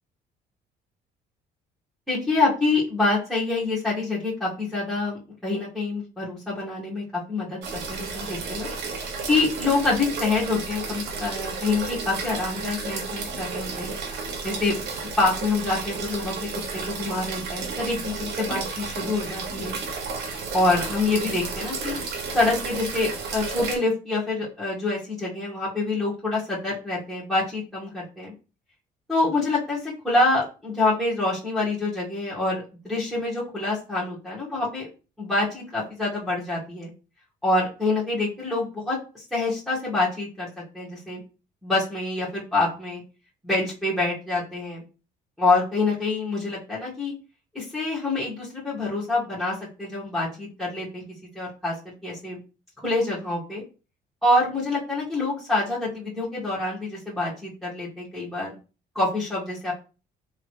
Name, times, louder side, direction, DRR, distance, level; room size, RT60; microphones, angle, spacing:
voice 1, 2.1-8.7 9.3-13.9 14.4-14.7 15.2-16.5 16.7-19.8 20.5-22.0 22.3-28.3 29.1-34.9 35.2-36.9 37.4-40.5 40.7-41.2 41.6-43.0 43.4-44.8 45.4-47.1 47.5-51.0 51.3-51.7 52.0-52.4 52.8-53.6 54.2-58.5 58.9-59.7, left 2 dB, ahead, -8 dB, 1.6 m, -26 dB
sound 1, 7.6-23.8, right 4 dB, 80° right, 1.0 m, -32 dB
3.4 x 3.1 x 3.2 m, 0.33 s
cardioid pair, 110°, 17 cm